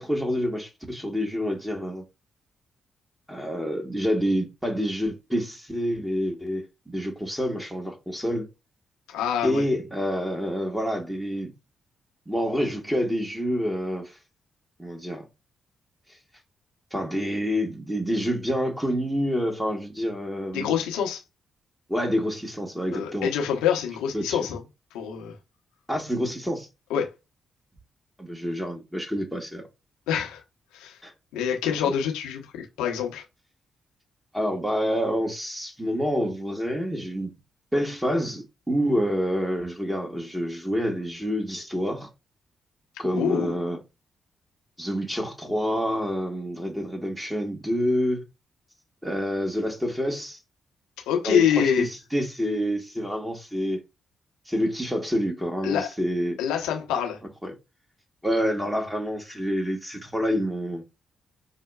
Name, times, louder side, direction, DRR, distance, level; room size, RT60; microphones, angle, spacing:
voice 1, 0.0-2.0 3.3-8.5 9.4-11.5 12.3-14.2 14.8-15.3 16.9-20.7 21.9-23.3 24.1-24.4 25.9-26.7 28.2-29.6 31.0-31.1 34.3-37.3 37.7-42.1 43.0-43.8 44.8-48.2 49.0-50.4 51.2-53.8 54.5-56.4 57.4-57.5 58.2-60.8, equal, 5° right, 1.2 m, -27 dB
voice 2, 9.1-9.7 20.5-21.2 22.9-24.6 24.9-25.3 26.9-27.1 30.1-30.4 30.7-31.0 31.3-33.2 43.1-43.6 51.1-51.9 55.6-55.9 56.4-57.2, left 8 dB, 80° left, 0.8 m, -26 dB
5.6 x 2.1 x 2.3 m
hypercardioid pair, 40°, 0 cm